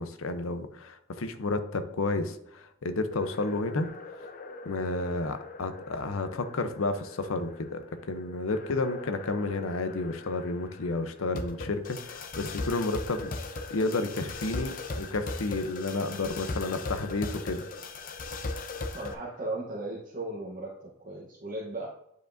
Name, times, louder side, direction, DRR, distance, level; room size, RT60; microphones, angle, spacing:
voice 1, 0.0-3.9 4.6-7.8 8.1-13.3 13.7-17.6, left 3 dB, 80° left, 9 dB, 0.7 m, -31 dB
sound 1, 3.1-19.1, left 3 dB, 40° left, 0.6 m, -39 dB
voice 2, 18.9-21.9, right 2 dB, 40° right, -4 dB, 0.9 m, -36 dB
9.2 x 5.0 x 2.6 m, 0.78 s
head